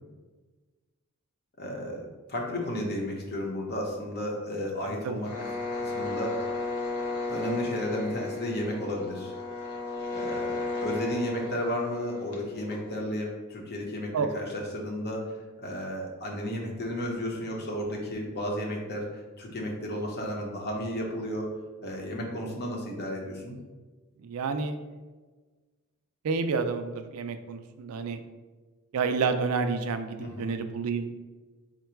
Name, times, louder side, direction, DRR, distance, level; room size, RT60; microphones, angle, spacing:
voice 1, 1.6-5.5 5.8-6.5 7.3-9.3 10.1-21.5 21.8-23.5 30.2-30.5, equal, 45° left, 0 dB, 0.8 m, -33 dB
voice 2, 4.8-5.2 14.1-14.3 24.2-24.7 26.2-28.2 28.9-31.1, right 5 dB, 70° right, 8 dB, 0.4 m, -29 dB
sound 1, 5.2-13.0, left 3 dB, 85° left, 0.8 m, -34 dB
3.8 x 2.2 x 4.4 m, 1.3 s
head